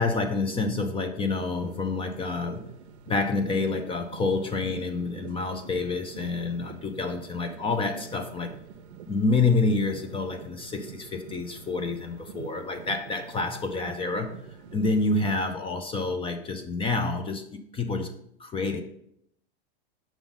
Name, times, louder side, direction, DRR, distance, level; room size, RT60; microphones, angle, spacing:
voice 1, 0.0-2.7 3.1-8.5 9.1-14.4 14.7-18.1 18.4-18.8, left 3 dB, 15° left, 7 dB, 0.5 m, -28 dB
sound 1, 1.2-15.5, right 7 dB, 90° right, 0.6 m, -46 dB
6.1 x 3.8 x 5.2 m, 0.73 s
hypercardioid pair, 120°, 32 cm